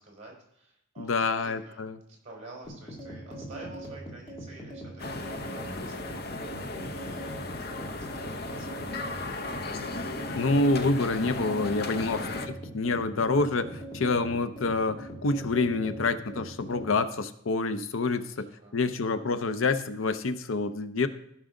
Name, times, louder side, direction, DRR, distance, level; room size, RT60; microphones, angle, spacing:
voice 1, 0.0-1.8 2.2-6.7 7.5-8.8 12.1-12.5 18.1-18.8, right 2 dB, 35° right, -2 dB, 4.2 m, -49 dB
voice 2, 1.0-2.0 10.4-18.5 18.7-21.1, left 3 dB, 90° left, 11 dB, 0.7 m, -27 dB
sound 1, 2.6-17.0, right 1 dB, 25° left, 2.3 m, -41 dB
sound 2, 5.0-12.5, left 2 dB, 50° left, 0.7 m, -36 dB
15.0 x 6.2 x 3.8 m, 0.73 s
head